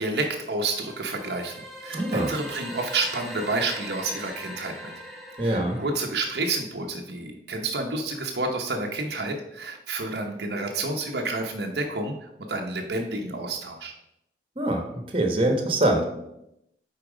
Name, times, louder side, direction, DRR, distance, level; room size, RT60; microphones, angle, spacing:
voice 1, 0.0-4.9 5.4-13.9, right 2 dB, 65° right, 2 dB, 0.8 m, -29 dB
sound 1, 0.7-6.7, equal, ahead, 1.4 m, -41 dB
voice 2, 1.9-2.3 5.4-5.8 14.6-16.0, right 1 dB, 30° right, 3 dB, 1.2 m, -24 dB
8.6 x 4.4 x 4.9 m, 0.83 s
head